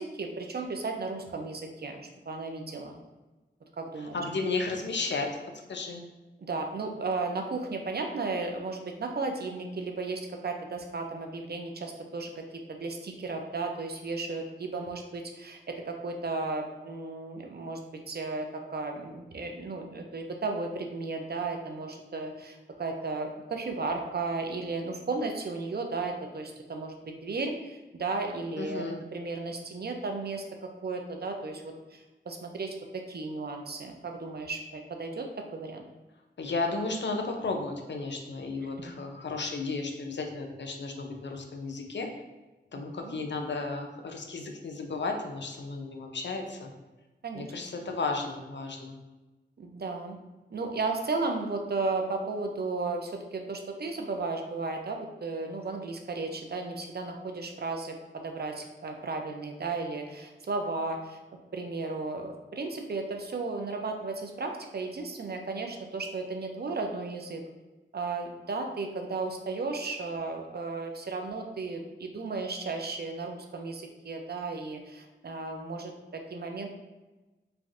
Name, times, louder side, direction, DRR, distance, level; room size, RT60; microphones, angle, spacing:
voice 1, 0.0-3.0 3.8-4.2 6.4-12.4 12.7-17.8 18.1-35.8 38.8-38.9 43.0-43.1 47.2-47.5 49.6-50.2 50.5-61.2 61.5-67.4 67.9-76.7, right 3 dB, 55° right, 3 dB, 0.4 m, -34 dB
voice 2, 4.0-5.3 5.7-6.0 28.6-29.0 36.4-42.1 42.7-46.7 47.3-49.0, left 3 dB, 65° left, 3 dB, 0.5 m, -33 dB
3.2 x 2.5 x 2.4 m, 1.1 s
wide cardioid pair, 65°, 20 cm